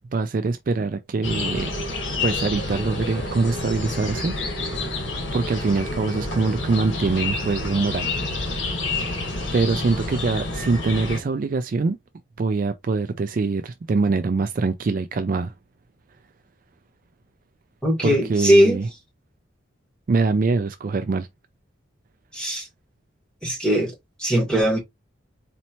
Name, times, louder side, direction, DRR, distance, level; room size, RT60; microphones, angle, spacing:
voice 1, 0.1-1.7 2.2-4.3 4.6-4.9 5.3-8.1 8.5-8.7 9.5-12.0 12.4-15.5 18.0-18.9 20.1-21.3, right 4 dB, 45° right, 0.3 m, -24 dB
sound 1, 1.2-11.2, left 2 dB, 70° left, 1.4 m, -28 dB
voice 2, 17.8-18.8 22.3-22.7 23.4-23.9 24.2-24.8, equal, 5° left, 1.7 m, -19 dB
4.2 x 2.7 x 2.9 m
head